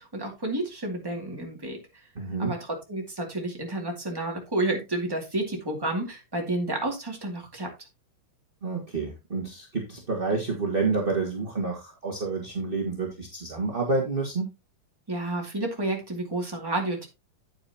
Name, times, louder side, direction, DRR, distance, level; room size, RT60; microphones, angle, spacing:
voice 1, 0.0-1.8 2.4-2.6 2.9-7.7 15.1-17.1, right 2 dB, 10° right, 0 dB, 1.6 m, -30 dB
voice 2, 2.1-2.5 8.6-14.5, right 3 dB, 30° right, -1 dB, 1.0 m, -29 dB
9.2 x 9.1 x 2.8 m, 0.24 s
omnidirectional pair, 3.8 m